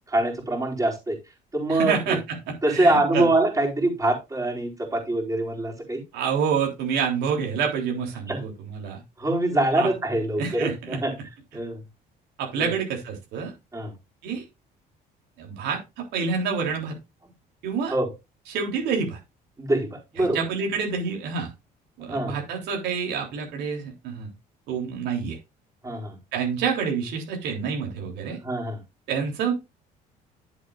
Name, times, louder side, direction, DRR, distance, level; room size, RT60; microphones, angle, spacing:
voice 1, 0.1-1.2 1.5-2.2 2.6-6.0 8.3-8.4 9.2-11.1 11.5-11.8 12.6-12.7 13.7-13.9 17.9-18.1 19.6-20.4 22.1-22.4 25.8-26.2 28.4-28.8, right 1 dB, 20° right, -1 dB, 4.4 m, -24 dB
voice 2, 1.7-3.3 6.1-9.0 9.8-9.9 10.4-11.0 12.4-13.5 14.2-14.4 15.4-17.0 17.6-17.9 18.5-19.2 20.2-21.5 22.0-24.3 24.7-25.4 26.3-28.4 29.1-29.5, right 6 dB, 85° right, 1 dB, 3.5 m, -28 dB
11.0 x 8.0 x 2.5 m, 0.23 s
cardioid pair, 110°, 17 cm